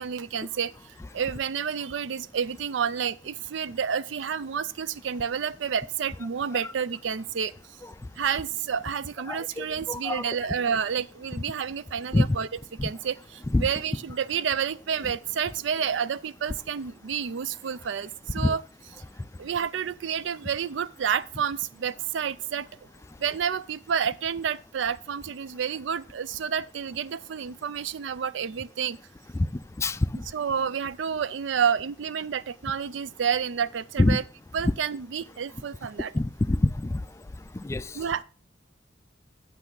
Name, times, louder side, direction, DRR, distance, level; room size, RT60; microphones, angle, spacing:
voice 1, 0.0-7.5 8.2-18.6 19.4-22.7 23.2-29.0 30.2-34.2 34.5-36.1 37.9-38.2, right 7 dB, 70° right, 0.4 m, -29 dB
voice 2, 9.3-10.2 12.1-12.3 12.8-12.9 13.5-13.7 18.4-18.5 29.4-29.5 29.8-30.0 34.0-34.2 36.1-37.0 37.5-37.9, left 2 dB, 15° left, 0.3 m, -24 dB
8.9 x 8.2 x 3.8 m
head